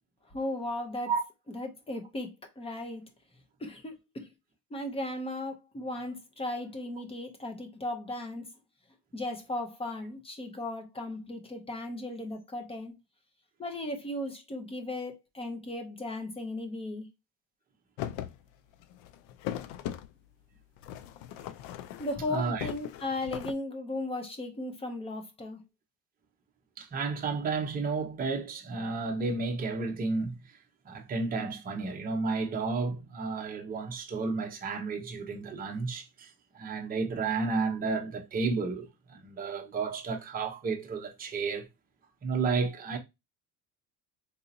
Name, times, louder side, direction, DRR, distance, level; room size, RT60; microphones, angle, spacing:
voice 1, 0.3-1.1 1.5-3.0 3.6-4.3 4.7-8.5 9.1-12.9 13.6-17.1 22.0-25.6, left 2 dB, 15° left, 0.6 m, -36 dB
sound 1, 18.0-18.4 18.7-20.1 20.8-22.3 22.6-23.5, left 11 dB, 85° left, 0.5 m, -39 dB
voice 2, 22.3-22.7 26.8-30.4 30.8-36.3 36.5-41.7 42.2-43.0, right 4 dB, 20° right, 0.7 m, -32 dB
4.0 x 2.8 x 2.6 m
cardioid pair, 165°, 42 cm